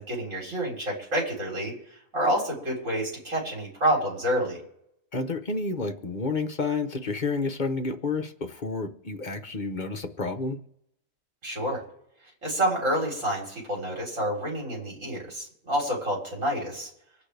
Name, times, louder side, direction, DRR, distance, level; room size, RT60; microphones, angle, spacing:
voice 1, 0.0-4.6 11.4-11.8 12.4-16.9, right 1 dB, 70° right, -3 dB, 4.4 m, -28 dB
voice 2, 5.1-10.6, left 3 dB, 40° left, 6 dB, 1.0 m, -30 dB
25.5 x 8.7 x 3.4 m, 0.77 s
omnidirectional pair, 1.4 m